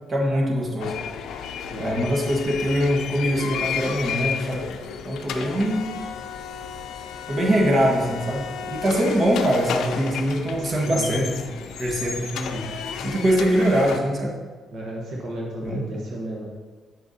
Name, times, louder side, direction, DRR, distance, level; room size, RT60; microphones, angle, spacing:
voice 1, 0.1-1.0 1.8-4.7 5.0-5.9 7.3-11.3 11.8-12.7 13.0-14.3 15.6-15.8, equal, 40° right, -1 dB, 1.5 m, -23 dB
sound 1, 0.8-14.0, left 7 dB, 80° left, 0.5 m, -33 dB
voice 2, 1.7-2.1 10.6-11.1 14.7-16.4, equal, 65° right, -2 dB, 1.1 m, -33 dB
8.4 x 6.9 x 2.8 m, 1.4 s
cardioid pair, 90°, 0 cm